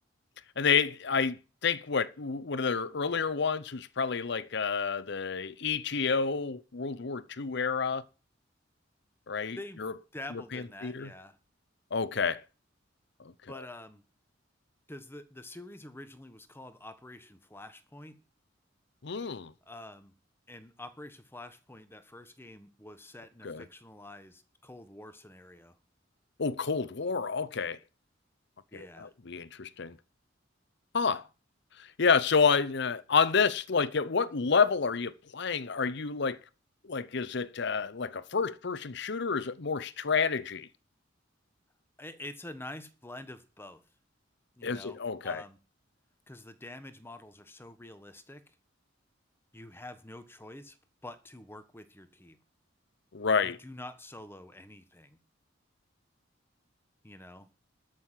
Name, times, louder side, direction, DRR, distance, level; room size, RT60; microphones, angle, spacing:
voice 1, 0.6-8.0 9.3-9.9 10.3-11.1 11.9-12.4 13.5-13.6 19.0-19.5 23.4-23.6 26.4-27.8 28.7-30.0 30.9-31.2 31.8-36.4 36.8-40.7 44.6-45.4 53.1-53.6, left 5 dB, 60° left, 0.8 m, -29 dB
voice 2, 10.1-11.4 13.5-14.0 14.9-18.2 19.6-20.1 20.5-25.8 28.7-29.1 42.0-43.8 44.6-45.6 46.3-48.4 49.5-50.8 51.0-52.4 53.4-55.2 57.0-57.5, left 1 dB, 10° left, 1.2 m, -47 dB
13.0 x 6.4 x 7.5 m
head